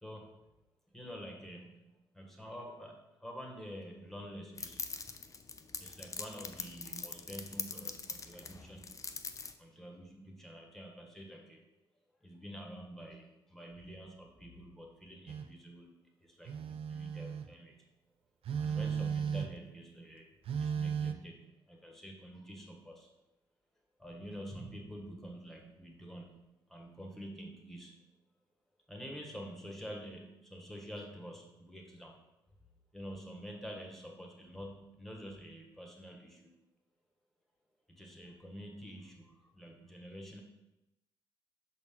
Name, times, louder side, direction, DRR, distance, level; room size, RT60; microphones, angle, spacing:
voice 1, 0.0-0.5 0.9-5.1 5.8-9.0 9.6-11.7 12.2-17.8 18.6-20.3 20.6-23.1 24.0-28.1 28.9-32.2 32.9-36.5 37.9-40.4, equal, ahead, 1 dB, 1.5 m, -48 dB
sound 1, 4.6-9.5, left 4 dB, 25° left, 0.5 m, -43 dB
Telephone, 15.3-15.5 16.5-17.5 18.5-19.7 20.5-21.1, right 7 dB, 50° right, 0.5 m, -35 dB
6.5 x 4.0 x 3.8 m, 0.94 s
figure-of-eight pair, 45°, 13 cm